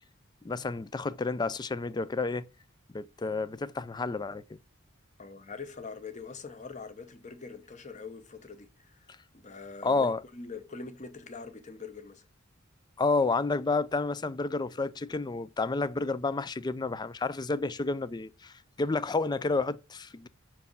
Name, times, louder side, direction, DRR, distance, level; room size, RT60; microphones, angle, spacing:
voice 1, 0.4-2.5 2.9-4.4 9.8-10.2 13.0-20.3, left 3 dB, 20° left, 0.4 m, -30 dB
voice 2, 5.2-9.1 9.3-12.3, left 4 dB, 35° left, 1.0 m, -43 dB
6.0 x 4.6 x 5.3 m
head